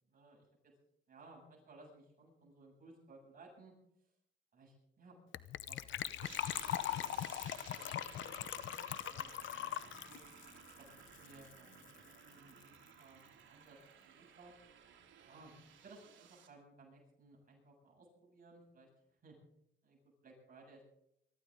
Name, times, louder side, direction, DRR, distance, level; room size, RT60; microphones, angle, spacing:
voice 1, 0.1-0.5 1.1-3.7 4.0-4.1 4.5-5.2 5.7-10.2 10.8-13.8 14.1-14.5 15.2-19.4 19.8-20.8, right 3 dB, 45° right, -1 dB, 7.9 m, -60 dB
Gurgling / Trickle dribble / Fill (with liquid), 5.3-11.6 11.8-11.9 12.1-12.3 12.6-12.7, left 12 dB, 70° left, 0.7 m, -41 dB
sound 1, 6.2-16.5, right 8 dB, 75° right, 3.3 m, -57 dB
23.5 x 14.0 x 3.8 m, 0.76 s
cardioid pair, 90°, 20 cm